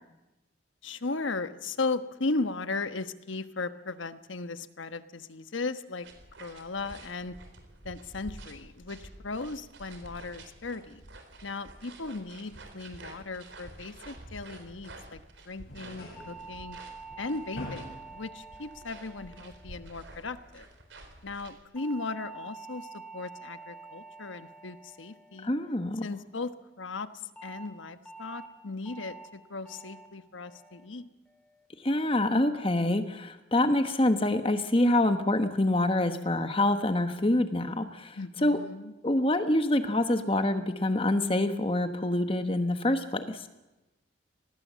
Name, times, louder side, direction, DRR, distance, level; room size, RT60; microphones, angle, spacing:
voice 1, 0.8-6.1 6.4-7.3 7.8-11.0 11.4-16.8 17.2-20.7 21.2-25.5 26.0-31.1 38.1-38.9, left 3 dB, 85° left, 11 dB, 1.2 m, -37 dB
sound 1, 6.0-21.6, right 2 dB, 75° right, 3.9 m, -49 dB
sound 2, 15.6-20.8, left 1 dB, 50° left, 6.9 m, -48 dB
sound 3, 16.2-20.6 21.8-26.2 27.4-27.7 28.1-28.5 28.9-29.3 29.7-30.1 30.5-30.9 31.3-31.7, right 4 dB, 5° left, 3.2 m, -48 dB
voice 2, 25.4-26.0 31.8-38.6 39.0-43.4, left 1 dB, 30° left, 8 dB, 1.1 m, -26 dB
25.5 x 19.5 x 7.5 m, 1.0 s
head